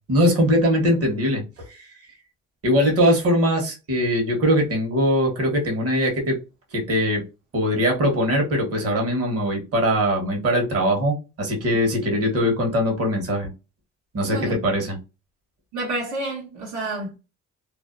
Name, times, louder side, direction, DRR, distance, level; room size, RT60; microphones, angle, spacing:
voice 1, 0.1-1.9 2.6-6.4 6.7-7.2 7.5-13.5 14.1-15.0, equal, 50° right, 1.2 m, -21 dB
voice 2, 15.7-17.2, right 2 dB, 85° right, 0.9 m, -29 dB
2.6 x 2.1 x 2.5 m
cardioid pair, 90°, 30 cm